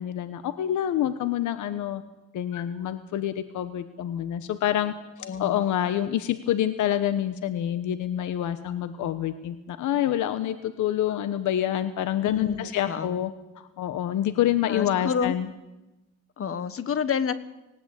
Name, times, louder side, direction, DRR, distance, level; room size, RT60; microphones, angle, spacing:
voice 1, 0.0-2.0 2.3-4.9 5.2-13.3 13.5-15.5, left 11 dB, 80° left, 11 dB, 1.2 m, -27 dB
voice 2, 5.2-5.6 12.2-13.2 14.6-15.4 16.4-17.3, left 6 dB, 45° left, 14 dB, 1.5 m, -29 dB
19.5 x 18.0 x 8.3 m, 1.0 s
cardioid pair, 90°, 30 cm